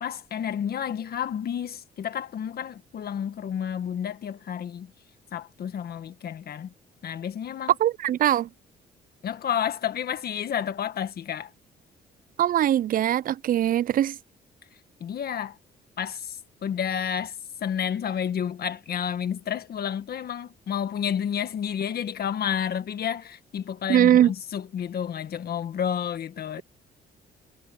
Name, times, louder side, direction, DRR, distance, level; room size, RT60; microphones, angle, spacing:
voice 1, 0.0-4.9 5.3-6.7 7.0-7.8 9.2-11.5 15.0-15.6 16.0-26.6, left 8 dB, 60° left, 1.8 m, -30 dB
voice 2, 7.8-8.5 12.4-14.2 23.9-24.3, right 11 dB, 50° right, 0.4 m, -21 dB
cardioid pair, 90°, 18 cm